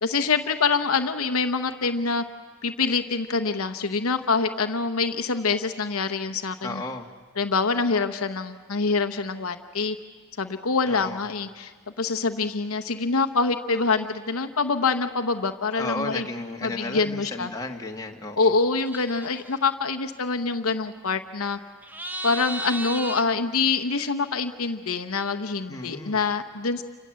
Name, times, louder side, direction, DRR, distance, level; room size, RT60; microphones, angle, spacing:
voice 1, 0.0-2.2 2.6-6.8 7.4-10.0 10.4-16.3 16.6-17.5 18.4-21.6 22.2-26.8, left 4 dB, 65° left, 8 dB, 1.0 m, -25 dB
voice 2, 6.6-7.1 10.9-11.2 15.8-18.5 25.7-26.2, left 2 dB, 15° left, 1 dB, 1.8 m, -33 dB
sound 1, 18.7-19.6 21.8-23.2, right 2 dB, 10° right, 0.8 m, -34 dB
29.0 x 26.0 x 7.6 m, 1.5 s
head